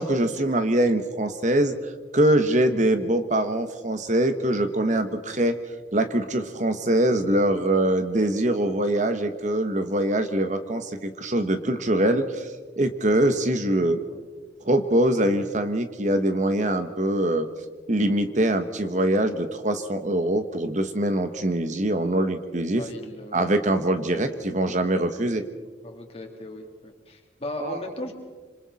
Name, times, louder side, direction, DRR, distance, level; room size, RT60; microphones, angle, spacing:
voice 1, 0.0-5.6 5.9-14.0 14.6-17.5 17.9-22.9 23.3-25.4 27.6-27.9, right 1 dB, 40° right, 8 dB, 1.3 m, -23 dB
voice 2, 22.8-23.4 24.1-24.3 25.8-28.1, left 2 dB, 35° left, 1 dB, 3.5 m, -37 dB
27.0 x 26.5 x 4.2 m, 1.4 s
head